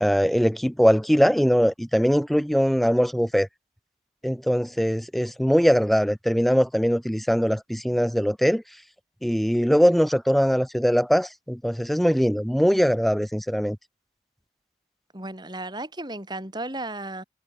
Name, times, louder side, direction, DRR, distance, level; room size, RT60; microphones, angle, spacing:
voice 1, 0.0-3.5 4.2-8.6 9.2-13.8, equal, ahead, 0.5 m, -21 dB
voice 2, 15.1-17.2, right 2 dB, 25° right, 5.5 m, -34 dB
head